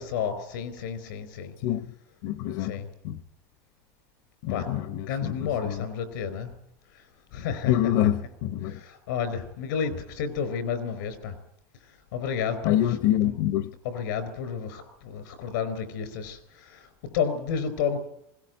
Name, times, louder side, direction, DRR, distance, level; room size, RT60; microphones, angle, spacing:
voice 1, 0.0-1.5 2.6-2.9 4.5-6.5 6.9-7.0 7.3-7.9 8.6-11.3 12.1-13.0 13.2-13.4 13.8-18.0, left 7 dB, 90° left, 4.5 m, -31 dB
voice 2, 2.2-2.8 3.0-3.2 4.4-5.8 7.6-8.8 12.6-13.7, left 12 dB, 70° left, 0.9 m, -26 dB
20.5 x 18.0 x 9.2 m
supercardioid pair, 145°, 10 cm